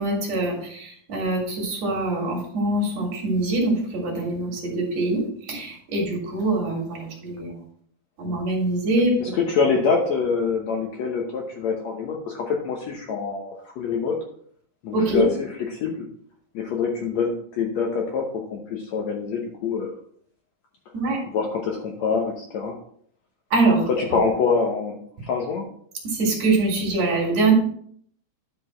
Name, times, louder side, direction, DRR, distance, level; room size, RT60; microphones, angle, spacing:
voice 1, 0.0-7.5 8.2-9.1 14.9-15.3 20.9-21.2 23.5-24.3 26.0-27.5, right 2 dB, 50° right, 0 dB, 3.0 m, -24 dB
voice 2, 9.2-14.2 14.8-16.1 16.5-19.9 21.3-22.8 24.0-25.0 25.2-25.7, left 5 dB, 90° left, 1 dB, 1.5 m, -25 dB
10.5 x 4.8 x 4.3 m, 0.62 s
omnidirectional pair, 4.5 m